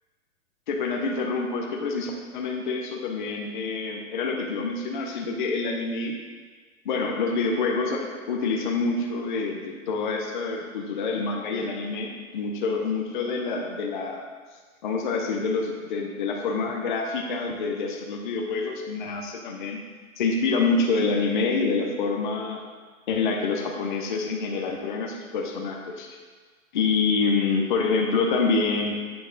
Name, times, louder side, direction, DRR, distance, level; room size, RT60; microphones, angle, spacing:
voice 1, 0.7-6.2 6.8-14.2 14.8-19.8 20.2-22.6 23.1-26.1 26.7-29.0, left 4 dB, 40° left, 0 dB, 0.6 m, -27 dB
7.8 x 5.6 x 3.8 m, 1.5 s
hypercardioid pair, 180°, 39 cm